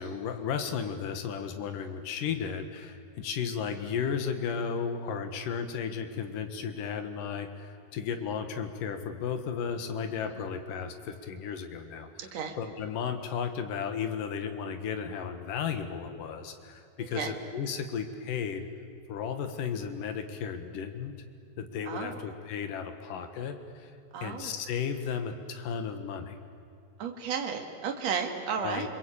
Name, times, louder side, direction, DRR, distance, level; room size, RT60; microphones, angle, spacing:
voice 1, 0.0-12.3 12.6-18.7 19.1-21.1 21.6-23.9 24.2-26.4 28.6-28.9, left 7 dB, 65° left, 7 dB, 2.3 m, -34 dB
voice 2, 12.2-12.6 17.0-17.3 21.9-22.3 24.1-24.6 27.0-28.9, right 6 dB, 55° right, 4 dB, 2.0 m, -33 dB
28.0 x 22.0 x 8.6 m, 2.5 s
omnidirectional pair, 5.8 m